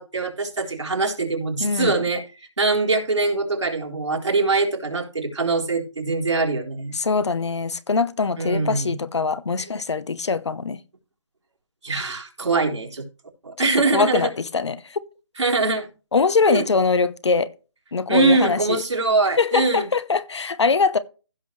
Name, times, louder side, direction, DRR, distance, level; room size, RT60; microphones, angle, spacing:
voice 1, 0.0-2.2 2.6-6.9 8.4-9.0 11.8-13.0 13.4-14.3 15.4-15.9 16.5-16.6 18.1-19.9, right 3 dB, 80° right, 4.0 m, -23 dB
voice 2, 1.6-2.0 6.9-10.8 13.6-15.0 16.1-17.5 17.9-18.8 19.4-21.0, left 4 dB, 70° left, 0.9 m, -22 dB
16.0 x 6.2 x 3.2 m
figure-of-eight pair, 155°, 15 cm